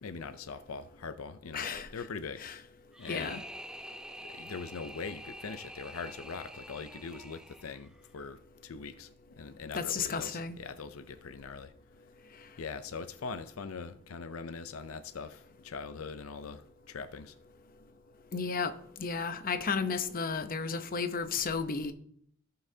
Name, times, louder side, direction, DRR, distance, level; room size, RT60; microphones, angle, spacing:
voice 1, 0.0-2.4 3.0-3.4 4.2-9.1 9.4-11.7 12.6-17.4, left 5 dB, 85° left, 0.6 m, -42 dB
voice 2, 1.5-1.9 2.4-2.5 3.1-3.4 9.7-10.5 18.3-18.7 19.0-21.9, left 5 dB, 45° left, 0.7 m, -33 dB
sound 1, 2.9-8.1, equal, 5° right, 0.4 m, -47 dB
17.0 x 5.7 x 2.8 m
head